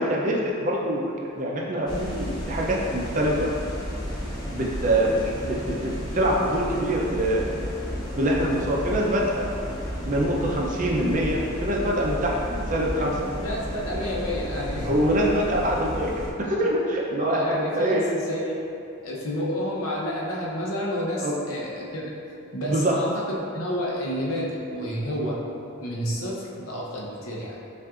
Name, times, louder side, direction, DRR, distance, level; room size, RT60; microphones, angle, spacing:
voice 1, 0.0-3.5 4.5-7.6 8.2-9.5 10.0-13.1 14.8-16.1 16.5-18.0 21.2-21.3 22.7-22.9, right 1 dB, 35° right, -2 dB, 0.5 m, -24 dB
sound 1, 1.9-16.3, equal, 20° left, 0.5 m, -33 dB
voice 2, 13.0-14.9 17.2-18.6 19.0-22.1 22.5-23.2 23.5-25.4 25.8-27.6, equal, 80° left, -4 dB, 0.8 m, -30 dB
7.1 x 2.5 x 2.4 m, 2.7 s
head